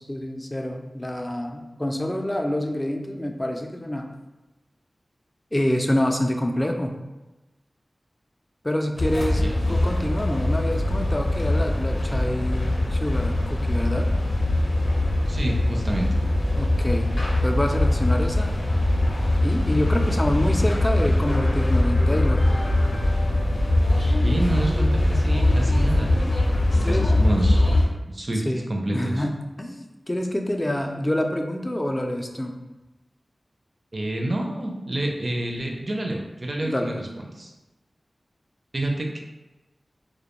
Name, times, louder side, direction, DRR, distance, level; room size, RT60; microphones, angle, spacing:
voice 1, 0.0-4.1 5.5-7.0 8.6-14.1 16.6-17.1 17.4-18.6 19.4-22.5 26.8-27.1 28.5-32.6 36.6-37.1, left 1 dB, 25° left, 4 dB, 0.3 m, -27 dB
sound 1, 9.0-27.9, left 1 dB, 80° left, 0.5 m, -22 dB
voice 2, 9.4-9.8 15.3-16.1 24.2-26.1 26.9-27.7 28.0-29.2 33.9-37.1 37.3-37.5 38.7-39.2, right 1 dB, 50° right, 1 dB, 0.4 m, -28 dB
2.2 x 2.1 x 2.9 m, 1.1 s
wide cardioid pair, 50°, 0 cm